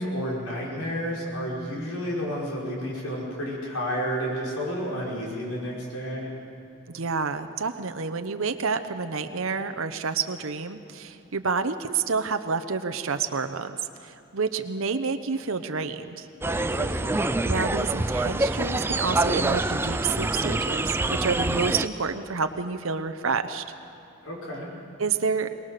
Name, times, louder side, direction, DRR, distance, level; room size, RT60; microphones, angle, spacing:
voice 1, 0.0-6.3 16.5-17.3 24.2-24.7, equal, 90° left, -4 dB, 5.4 m, -31 dB
voice 2, 6.9-16.3 17.4-23.6 25.0-25.5, right 5 dB, 70° right, 8 dB, 0.8 m, -29 dB
sound 1, 16.4-21.9, right 2 dB, 10° right, 0.4 m, -26 dB
22.5 x 20.0 x 6.7 m, 2.8 s
head